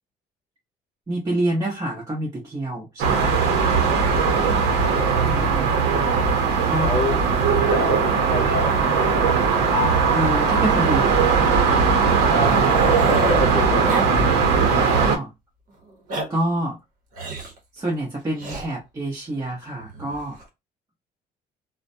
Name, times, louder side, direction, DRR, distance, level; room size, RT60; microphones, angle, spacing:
voice 1, 1.1-3.3 6.7-6.9 10.1-11.5 14.7-15.3 16.3-16.8 17.7-20.4, right 1 dB, 20° right, 0.8 m, -27 dB
sound 1, 3.0-15.2, right 5 dB, 85° right, 0.7 m, -19 dB
voice 2, 4.0-5.2 6.8-9.2 12.3-14.1, left 2 dB, 40° left, 0.8 m, -30 dB
Growling, 6.4-8.3 8.6-8.7 9.0-9.2 9.5-9.6 10.6-13.5 13.9-14.1 14.4-15.1 15.9-16.3 17.1-17.6 18.4-18.7 19.8-20.4, right 1 dB, 55° right, 0.9 m, -32 dB
sound 2, 7.7-12.1 12.4-12.5, left 7 dB, 85° left, 0.7 m, -34 dB
2.3 x 2.1 x 2.6 m
cardioid pair, 110°, 17 cm